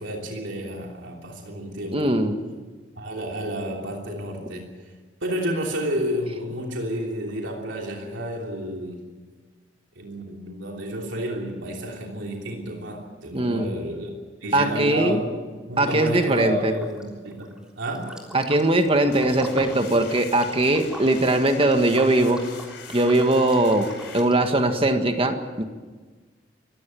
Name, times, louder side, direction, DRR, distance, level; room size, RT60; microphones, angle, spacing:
voice 1, 0.0-2.1 3.0-4.7 5.2-9.1 9.9-14.1 14.4-15.4 15.7-18.2, equal, 80° right, 0 dB, 3.2 m, -30 dB
voice 2, 1.9-2.4 13.3-13.7 14.5-15.2 15.8-16.7 18.3-22.4 22.9-25.6, right 1 dB, 30° right, 6 dB, 1.7 m, -21 dB
Liquid, 15.7-16.4 16.7-24.6, equal, 5° right, 3.4 m, -42 dB
sound 1, 19.0-24.2, left 5 dB, 70° left, 5.0 m, -43 dB
25.5 x 15.5 x 9.2 m, 1.4 s
head